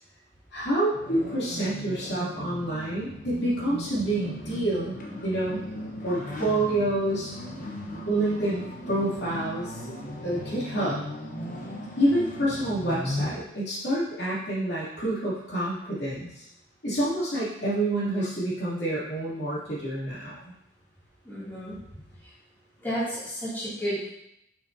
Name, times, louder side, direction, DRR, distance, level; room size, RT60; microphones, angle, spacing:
voice 1, 0.5-5.6 6.0-7.3 8.1-9.7 10.2-11.1 12.0-16.5 16.8-20.5, right 1 dB, 60° left, -8 dB, 2.7 m, -28 dB
sound 1, 0.9-13.3, left 1 dB, 45° left, 1.1 m, -37 dB
voice 2, 21.2-21.7 22.8-24.1, equal, 10° left, -11 dB, 2.6 m, -31 dB
7.1 x 6.2 x 2.8 m, 0.79 s
head